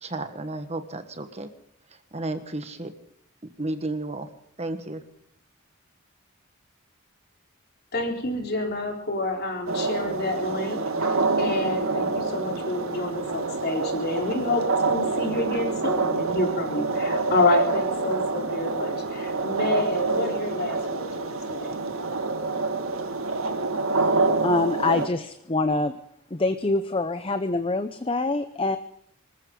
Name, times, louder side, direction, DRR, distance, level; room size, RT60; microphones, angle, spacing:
voice 1, 0.0-1.5 2.1-2.9 3.6-4.3 4.6-5.0, right 2 dB, 30° right, 8 dB, 1.4 m, -32 dB
voice 2, 7.9-11.1 11.4-21.8, left 2 dB, 45° left, 2 dB, 4.0 m, -28 dB
sound 1, 9.7-25.1, right 3 dB, 70° right, 1.9 m, -27 dB
voice 3, 24.0-26.0 26.3-28.8, left 2 dB, 25° left, 10 dB, 0.7 m, -25 dB
25.5 x 14.5 x 3.8 m, 0.72 s
head